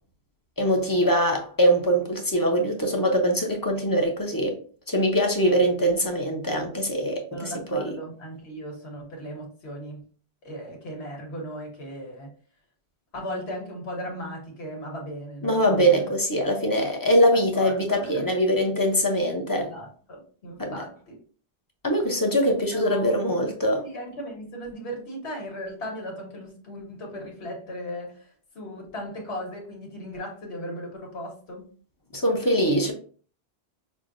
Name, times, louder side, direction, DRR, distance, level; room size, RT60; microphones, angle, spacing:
voice 1, 0.6-4.6 4.9-7.8 15.4-19.7 20.6-20.8 21.8-23.9 32.1-32.9, equal, 25° left, 0.6 m, -23 dB
voice 2, 7.3-10.0 10.4-12.3 13.1-16.0 17.5-18.3 19.5-21.2 22.7-23.3 23.8-28.3 28.5-31.7, equal, 90° left, 1.5 m, -37 dB
6.1 x 2.1 x 2.5 m
omnidirectional pair, 1.1 m